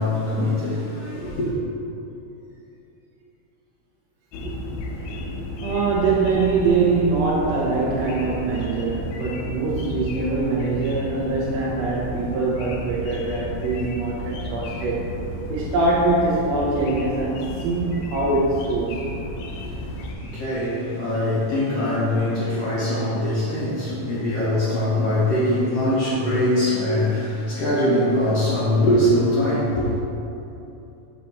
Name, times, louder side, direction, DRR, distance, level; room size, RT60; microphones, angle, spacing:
voice 1, 0.0-1.5 20.2-29.9, left 1 dB, 65° left, -9 dB, 1.6 m, -22 dB
sound 1, 4.3-20.1, left 1 dB, 90° left, 1.6 m, -33 dB
voice 2, 5.6-15.1 15.5-19.0, right 3 dB, 80° right, -5 dB, 1.5 m, -23 dB
7.1 x 2.9 x 5.3 m, 2.9 s
omnidirectional pair, 3.9 m